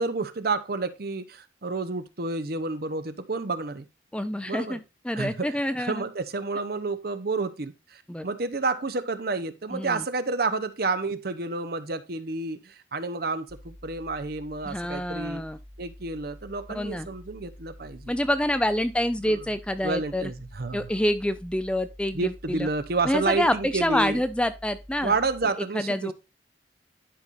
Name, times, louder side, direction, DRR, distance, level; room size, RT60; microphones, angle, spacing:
voice 1, 0.0-3.9 4.5-4.8 5.1-5.5 5.9-15.4 15.8-18.1 19.3-19.4 19.8-20.9 22.1-24.2 25.0-26.1, right 3 dB, 55° right, 0.8 m, -30 dB
voice 2, 4.1-6.0 8.1-8.3 9.7-10.0 14.6-15.6 16.7-17.1 18.1-20.3 20.7-22.7 23.0-25.1 25.7-26.1, left 1 dB, 5° left, 0.5 m, -27 dB
sound 1, 13.5-25.5, equal, 15° right, 1.2 m, -48 dB
11.0 x 5.4 x 2.5 m
head